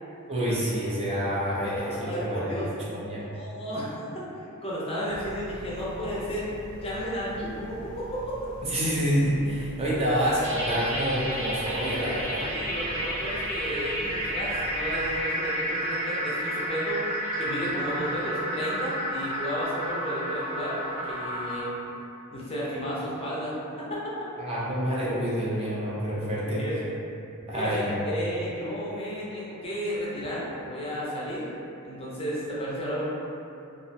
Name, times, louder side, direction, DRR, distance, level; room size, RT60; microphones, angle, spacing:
voice 1, 0.3-2.6 2.9-3.3 8.6-12.5 24.4-26.6 27.5-28.0, equal, 25° right, -8 dB, 0.5 m, -27 dB
voice 2, 1.8-2.7 3.3-3.9 4.3-6.5 6.8-8.2 12.4-17.0 17.4-21.7 22.3-23.5 23.8-23.9 26.4-26.9 27.5-31.5 31.8-33.0, equal, 25° left, -7 dB, 0.5 m, -33 dB
sound 1, 5.1-15.2, equal, 90° left, 0.5 m, -44 dB
sound 2, 10.4-21.6, equal, 70° right, 1.0 m, -31 dB
2.4 x 2.0 x 2.6 m, 2.7 s
head